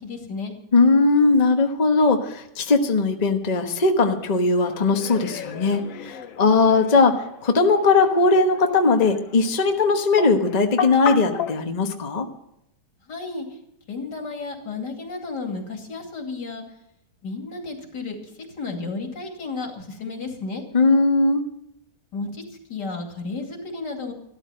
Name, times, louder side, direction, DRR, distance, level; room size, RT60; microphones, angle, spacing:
voice 1, 0.0-0.5 13.1-13.5 13.9-16.6 17.2-18.2 18.6-20.6 22.1-22.4 22.7-24.1, left 3 dB, 80° left, 3 dB, 3.1 m, -32 dB
voice 2, 0.7-12.3 20.7-21.4, left 3 dB, 25° left, 4 dB, 1.1 m, -19 dB
sound 1, 4.0-11.6, left 8 dB, 55° left, 1.1 m, -34 dB
13.5 x 12.5 x 5.6 m, 0.80 s
omnidirectional pair, 1.8 m